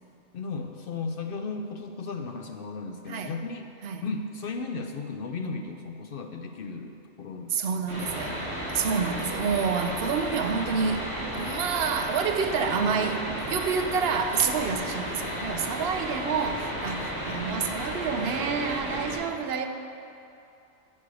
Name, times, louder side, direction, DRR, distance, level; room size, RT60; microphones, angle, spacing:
voice 1, 0.3-3.7 4.0-8.3 13.6-13.7 16.9-17.1, left 4 dB, 60° left, 5 dB, 0.6 m, -36 dB
voice 2, 7.5-8.4 8.7-19.7, right 6 dB, 60° right, 6 dB, 0.9 m, -28 dB
sound 1, 7.9-19.1, equal, 90° right, 3.2 m, -33 dB
8.5 x 6.5 x 8.2 m, 2.7 s
omnidirectional pair, 1.3 m